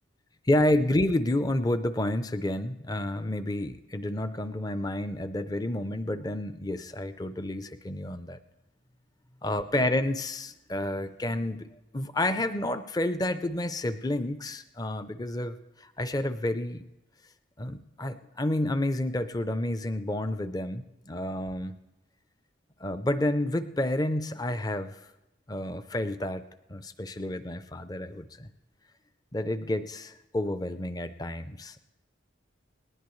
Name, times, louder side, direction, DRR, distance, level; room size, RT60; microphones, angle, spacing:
voice 1, 0.5-8.4 9.4-11.7 11.9-15.6 16.0-16.9 17.6-21.8 22.8-24.9 25.5-26.4 26.7-28.5 29.3-31.9, left 1 dB, 20° left, 11 dB, 0.5 m, -30 dB
19.0 x 19.0 x 3.2 m, 0.94 s
head